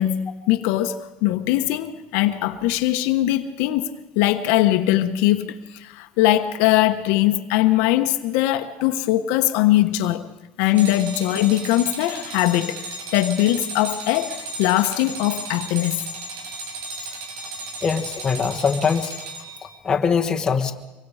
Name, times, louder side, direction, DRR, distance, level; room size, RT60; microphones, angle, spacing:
voice 1, 0.0-10.2 10.6-12.8 13.1-16.0, left 14 dB, 75° left, 1.2 m, -21 dB
sound 1, 10.7-19.8, right 3 dB, 80° right, 4.8 m, -35 dB
voice 2, 17.8-19.1 19.8-20.7, left 6 dB, 20° left, 1.5 m, -22 dB
25.0 x 23.5 x 5.0 m
cardioid pair, 155°, 4 cm